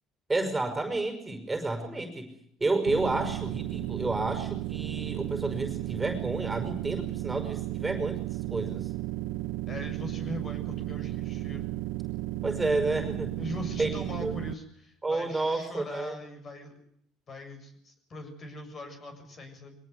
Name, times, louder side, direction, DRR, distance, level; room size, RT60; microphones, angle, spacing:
voice 1, 0.3-2.3 2.6-8.9 12.4-13.3 13.8-14.3 15.0-16.2, right 2 dB, 15° right, 7 dB, 5.5 m, -30 dB
sound 1, 2.9-14.5, right 17 dB, 75° right, 0.8 m, -34 dB
voice 2, 9.7-11.7 13.4-16.8 17.3-19.8, left 1 dB, 40° left, 7 dB, 7.1 m, -41 dB
23.0 x 18.5 x 8.2 m, 0.68 s
supercardioid pair, 85°, 0 cm